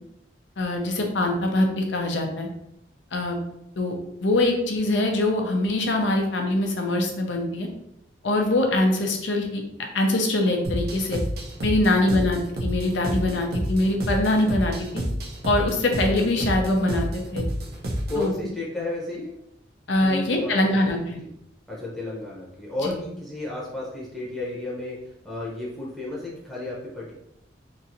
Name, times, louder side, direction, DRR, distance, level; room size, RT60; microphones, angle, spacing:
voice 1, 0.6-2.5 3.1-3.4 3.8-3.9 4.2-7.7 8.2-11.2 11.6-15.0 15.4-17.4 18.1-18.3 19.9-21.2 22.8-22.9, left 1 dB, 80° left, 2 dB, 0.6 m, -23 dB
sound 1, 10.6-18.3, equal, 55° right, 0.5 m, -30 dB
voice 2, 18.1-19.3 20.0-21.0 21.7-27.1, left 2 dB, ahead, -7 dB, 0.7 m, -33 dB
3.0 x 2.7 x 2.6 m, 0.79 s
head